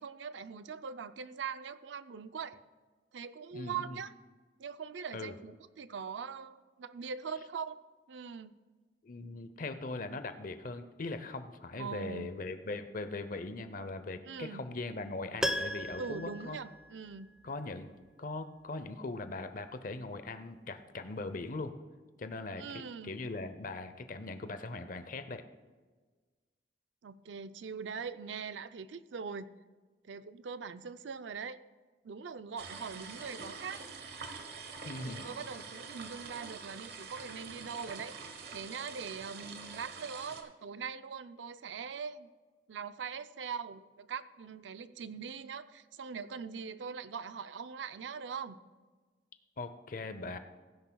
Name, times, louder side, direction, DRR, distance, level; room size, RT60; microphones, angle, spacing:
voice 1, 0.0-2.6 3.1-4.1 4.6-7.8 8.1-8.5 11.8-12.3 14.3-14.6 16.0-17.4 22.6-23.1 27.0-29.5 30.0-31.6 32.0-33.8 35.2-38.2 38.5-42.3 42.7-48.6, right 6 dB, 90° right, 13 dB, 0.5 m, -42 dB
voice 2, 3.5-4.0 5.1-5.3 9.0-16.6 17.4-17.9 18.2-21.7 22.2-25.4 34.8-35.3 49.6-50.4, left 3 dB, 50° left, 10 dB, 0.7 m, -40 dB
Piano, 15.4-17.5 17.8-17.9, equal, 5° right, 0.4 m, -37 dB
sound 1, 32.6-40.4, right 5 dB, 60° right, 1.1 m, -46 dB
16.0 x 10.0 x 2.3 m, 1.4 s
head